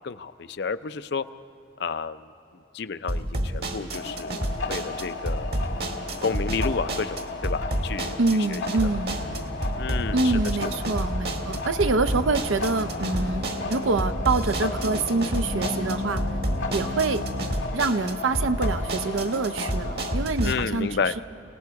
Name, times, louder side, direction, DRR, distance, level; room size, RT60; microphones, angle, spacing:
voice 1, 0.0-1.2 1.8-2.2 2.7-5.6 6.2-7.2 7.4-8.2 8.5-8.9 9.8-10.4 20.4-21.1, left 5 dB, 55° left, 13 dB, 0.5 m, -30 dB
sound 1, 3.1-20.5, right 1 dB, 55° right, 1.6 m, -30 dB
sound 2, 3.9-20.2, left 3 dB, 80° left, 1.8 m, -35 dB
voice 2, 8.2-9.2 10.1-16.2 16.7-17.2 17.7-20.9, right 3 dB, 90° right, 10 dB, 0.7 m, -26 dB
sound 3, 9.1-17.6, left 1 dB, 20° right, 0.8 m, -35 dB
29.5 x 18.5 x 4.8 m, 3.0 s
head